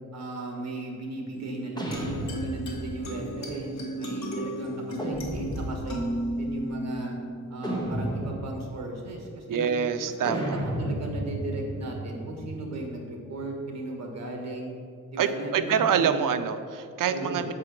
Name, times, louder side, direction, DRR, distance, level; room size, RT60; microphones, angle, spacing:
voice 1, 0.1-6.0 6.4-7.1 7.5-9.7 10.1-14.7 15.1-16.2 17.1-17.4, right 2 dB, 55° right, 1 dB, 1.5 m, -36 dB
sound 1, 1.3-8.3, right 1 dB, 55° left, 1.5 m, -35 dB
sound 2, 1.8-3.1 5.0-6.1 7.6-8.7 10.3-12.9, right 1 dB, 10° left, 1.1 m, -33 dB
voice 2, 9.5-10.6 15.2-17.5, right 7 dB, 75° right, 9 dB, 0.6 m, -26 dB
7.5 x 4.9 x 5.9 m, 2.3 s
wide cardioid pair, 135°, 33 cm